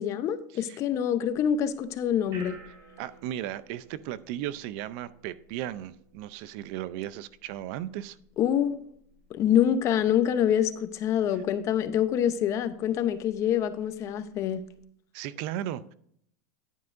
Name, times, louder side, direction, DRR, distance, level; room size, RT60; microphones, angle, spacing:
voice 1, 0.0-2.6 8.4-8.8 9.3-14.6, left 9 dB, 40° left, 0.8 m, -26 dB
sound 1, 1.3-14.8, right 2 dB, 40° right, 4.1 m, -56 dB
voice 2, 3.0-8.2 15.1-15.9, right 12 dB, 55° right, 0.5 m, -36 dB
10.0 x 9.4 x 2.6 m
supercardioid pair, 130°, 8 cm